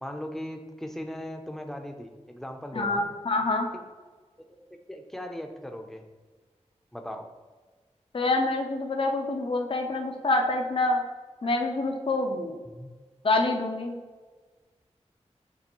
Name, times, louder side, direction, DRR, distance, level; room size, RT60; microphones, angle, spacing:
voice 1, 0.0-3.1 4.9-6.0 6.9-7.3 12.7-12.9, equal, 5° left, 4 dB, 0.6 m, -38 dB
voice 2, 2.7-3.7 8.1-11.0 11.4-12.6 13.2-14.0, left 2 dB, 50° left, 3 dB, 0.5 m, -26 dB
6.7 x 2.5 x 2.9 m, 1.4 s
wide cardioid pair, 50°, 12 cm